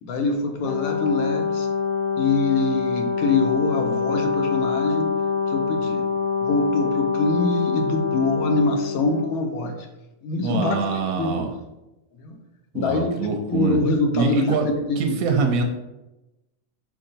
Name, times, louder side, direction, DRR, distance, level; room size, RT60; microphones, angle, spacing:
voice 1, 0.0-1.7 2.2-5.1 5.5-6.0 6.4-9.9 10.2-11.5 12.2-12.4 12.7-13.2 13.5-15.4, left 3 dB, 85° left, 4 dB, 1.1 m, -24 dB
Brass instrument, 0.6-9.3, left 6 dB, 60° left, 0.6 m, -25 dB
voice 2, 10.4-11.5 12.7-13.8 14.1-14.7 15.0-15.6, right 5 dB, 90° right, 4 dB, 1.0 m, -24 dB
4.4 x 3.7 x 2.6 m, 0.99 s
omnidirectional pair, 1.5 m